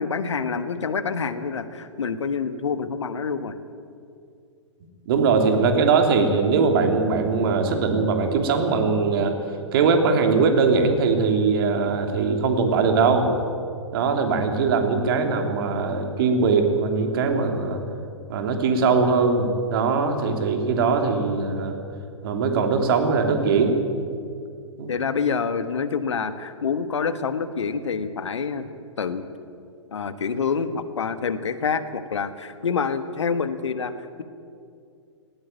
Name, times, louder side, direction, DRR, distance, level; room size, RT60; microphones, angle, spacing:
voice 1, 0.0-3.5 24.9-28.7 29.0-29.3 29.9-33.9, left 5 dB, 65° left, 12 dB, 1.4 m, -27 dB
voice 2, 5.0-9.3 9.7-13.3 13.9-17.8 18.3-21.8 22.2-23.8 24.8-24.9, right 4 dB, 45° right, 5 dB, 3.1 m, -21 dB
18.5 x 17.5 x 9.2 m, 2.4 s
figure-of-eight pair, 110°, 16 cm